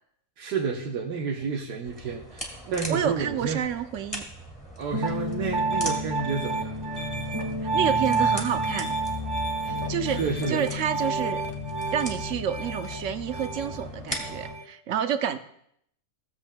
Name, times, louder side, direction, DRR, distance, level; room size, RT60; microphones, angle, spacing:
voice 1, 0.4-3.7 4.8-6.7 10.0-10.6, right 5 dB, 85° right, -1 dB, 1.5 m, -30 dB
sound 1, 1.8-14.5, equal, 5° left, 1.7 m, -39 dB
voice 2, 2.9-4.2 7.7-8.9 9.6-10.2 10.5-11.4 11.9-15.4, right 9 dB, 65° right, 9 dB, 0.8 m, -29 dB
Piano, 4.9-14.6, right 2 dB, 20° right, 1.2 m, -29 dB
17.5 x 7.4 x 2.2 m, 0.70 s
omnidirectional pair, 1.7 m